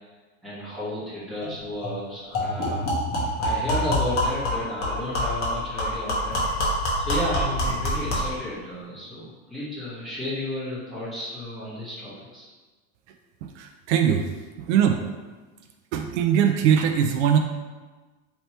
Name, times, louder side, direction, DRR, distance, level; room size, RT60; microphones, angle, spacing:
voice 1, 0.4-2.9 3.4-6.4 7.0-12.5, left 1 dB, ahead, -12 dB, 1.3 m, -33 dB
sound 1, 1.4-1.5 1.8-2.0 2.3-8.4, left 1 dB, 25° left, 1.0 m, -26 dB
voice 2, 13.4-14.3 14.7-15.0 15.9-17.4, right 8 dB, 75° right, 5 dB, 0.5 m, -21 dB
3.3 x 3.0 x 4.1 m, 1.3 s
supercardioid pair, 165°, 35 cm